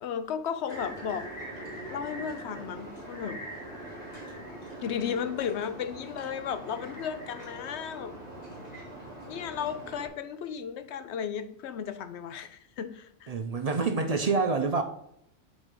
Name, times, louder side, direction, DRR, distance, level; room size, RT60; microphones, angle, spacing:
voice 1, 0.0-1.3 1.9-3.4 4.8-8.1 9.2-13.3, left 8 dB, 65° left, 0.8 m, -34 dB
sound 1, 0.7-10.1, right 1 dB, 30° left, 2.4 m, -42 dB
voice 2, 13.3-14.8, right 4 dB, 50° right, 0.4 m, -27 dB
8.0 x 4.2 x 3.7 m
omnidirectional pair, 1.3 m